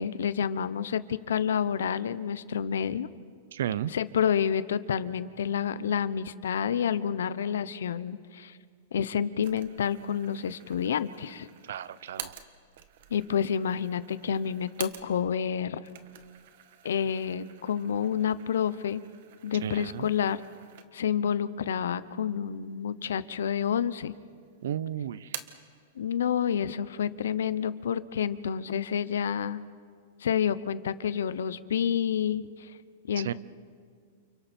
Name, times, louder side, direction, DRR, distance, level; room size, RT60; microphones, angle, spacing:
voice 1, 0.0-3.1 3.9-8.6 8.9-11.5 13.1-15.8 16.8-19.0 19.4-20.4 20.9-24.1 25.9-29.6 30.2-32.7 33.1-33.3, left 8 dB, 90° left, 15 dB, 0.9 m, -29 dB
voice 2, 3.5-3.9 11.7-12.3 19.6-20.1 24.6-25.4 33.2-33.3, right 10 dB, 75° right, 18 dB, 0.8 m, -33 dB
sound 1, 9.4-15.4 15.7-21.2 21.6-21.7 22.6-23.2 23.5-24.3 24.6-25.7, right 10 dB, 60° right, 1.6 m, -47 dB
29.5 x 29.0 x 4.5 m, 2.1 s
supercardioid pair, 150°, 0 cm